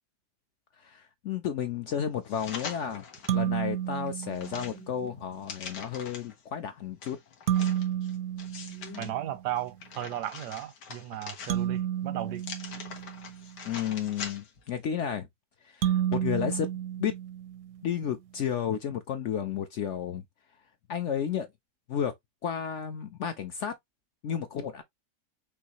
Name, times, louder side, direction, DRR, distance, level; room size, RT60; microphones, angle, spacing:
voice 1, 0.8-3.0 3.3-7.2 13.6-15.3 15.6-16.7 17.0-17.1 17.8-20.2 20.9-21.5 21.9-22.1 22.4-23.7 24.2-24.8, left 8 dB, 65° left, 0.7 m, -32 dB
sound 1, 2.3-3.4 3.9-6.4 7.0-9.1 9.6-11.9 12.4-14.7 15.0-15.1, left 6 dB, 90° left, 1.8 m, -43 dB
sound 2, 3.3-5.0 7.5-9.5 11.5-13.6 15.8-17.9, right 10 dB, 70° right, 0.8 m, -31 dB
voice 2, 9.0-12.4, right 12 dB, 85° right, 1.3 m, -35 dB
5.5 x 3.1 x 2.9 m
omnidirectional pair, 1.7 m